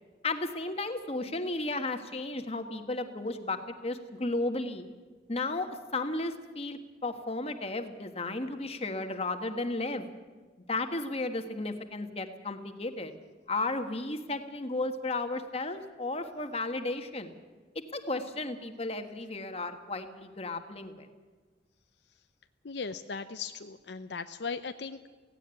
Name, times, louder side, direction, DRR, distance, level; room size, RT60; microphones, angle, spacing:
voice 1, 0.2-4.8 5.3-10.1 10.7-13.1 13.5-17.3 17.9-21.1, left 2 dB, 35° left, 7 dB, 1.5 m, -34 dB
voice 2, 22.6-25.1, left 5 dB, 70° left, 9 dB, 0.7 m, -38 dB
17.0 x 16.5 x 9.8 m, 1.4 s
head